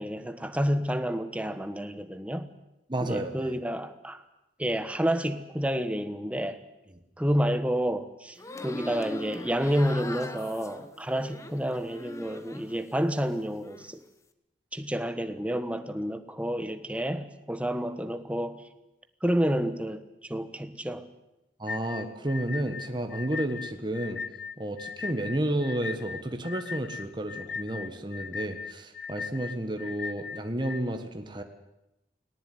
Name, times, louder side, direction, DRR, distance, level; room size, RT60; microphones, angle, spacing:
voice 1, 0.0-2.5 3.0-4.2 4.6-6.6 7.2-14.0 14.7-18.6 19.2-21.1, equal, 10° right, 10 dB, 1.3 m, -29 dB
voice 2, 2.9-3.5 21.6-24.2 24.6-31.4, right 1 dB, 25° right, 6 dB, 1.6 m, -31 dB
sound 1, 8.4-12.8 13.1-13.9, left 2 dB, 15° left, 1.2 m, -41 dB
sound 2, 21.7-30.8, left 6 dB, 65° left, 0.8 m, -38 dB
19.0 x 18.5 x 9.5 m, 0.90 s
head